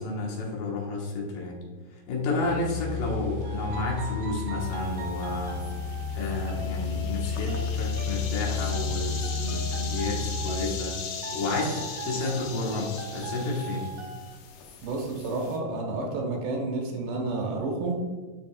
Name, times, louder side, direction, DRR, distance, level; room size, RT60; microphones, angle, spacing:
voice 1, 0.0-1.6 2.1-5.6 6.1-10.9 11.3-13.9, left 2 dB, 70° left, -2 dB, 3.1 m, -31 dB
sound 1, 2.4-10.6, left 5 dB, 25° left, 1.7 m, -32 dB
sound 2, 3.4-14.4, right 2 dB, 60° right, 2.4 m, -40 dB
sound 3, 4.6-15.6, left 6 dB, 85° left, 3.2 m, -40 dB
voice 2, 14.8-18.1, right 2 dB, 75° right, 2 dB, 3.3 m, -30 dB
12.0 x 5.2 x 2.4 m, 1.4 s
omnidirectional pair, 4.9 m